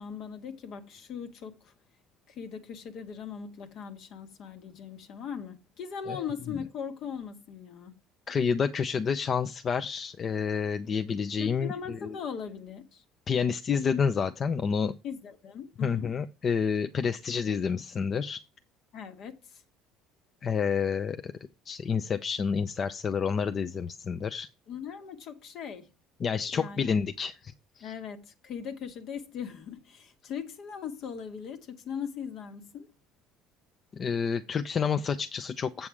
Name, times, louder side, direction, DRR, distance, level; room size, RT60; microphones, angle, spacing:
voice 1, 0.0-1.7 2.3-8.0 11.4-13.0 15.0-16.1 18.9-19.6 24.7-25.9 26.5-26.8 27.8-32.9, left 7 dB, 60° left, 1.6 m, -39 dB
voice 2, 8.3-12.2 13.3-14.9 15.8-18.4 20.4-21.3 21.7-24.5 26.2-27.9 33.9-35.9, left 6 dB, 40° left, 0.6 m, -29 dB
7.6 x 7.0 x 4.8 m
supercardioid pair, 90°, 0 cm